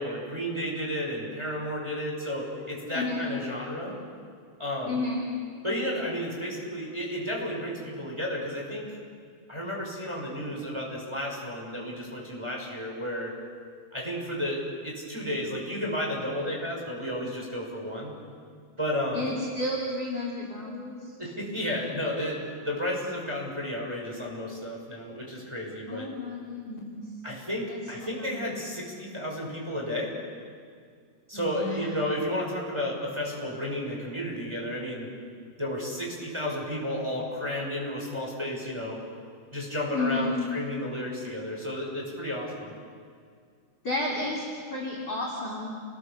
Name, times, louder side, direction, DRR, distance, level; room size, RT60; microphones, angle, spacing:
voice 1, 0.0-4.0 4.6-5.1 5.6-8.9 9.5-13.3 13.9-18.1 18.8-19.3 21.2-26.1 27.2-30.1 31.3-35.1 35.6-39.0 39.5-42.7, equal, 5° right, -3 dB, 6.0 m, -32 dB
voice 2, 2.9-3.3 4.9-5.3 19.1-21.1 25.9-27.1 27.7-28.5 31.3-31.9 39.9-40.4 43.8-45.7, left 2 dB, 25° left, -2 dB, 3.2 m, -32 dB
29.5 x 21.5 x 7.1 m, 2.1 s
omnidirectional pair, 4.2 m